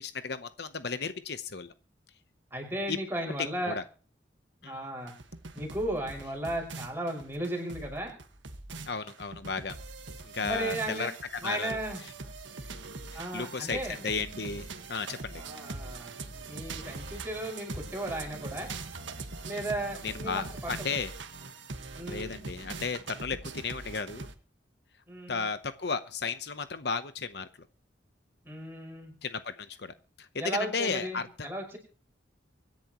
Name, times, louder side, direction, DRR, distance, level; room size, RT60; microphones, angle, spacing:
voice 1, 0.0-1.7 2.9-3.0 3.4-3.8 4.6-4.9 8.9-9.7 10.2-11.1 11.4-11.8 12.6-12.7 13.1-15.4 20.0-21.1 22.0-24.3 25.3-27.5 29.2-31.5, left 5 dB, 60° left, 11 dB, 0.8 m, -34 dB
voice 2, 2.5-3.8 4.6-5.1 5.6-8.1 10.4-11.1 11.4-12.0 13.1-14.0 15.4-16.1 16.5-18.7 19.4-20.7 21.9-22.3 25.1-25.5 28.4-29.1 30.4-31.8, right 1 dB, 10° right, 1 dB, 5.6 m, -35 dB
sound 1, 5.1-24.3, right 3 dB, 80° right, 1.6 m, -42 dB
24.5 x 10.5 x 3.0 m, 0.39 s
head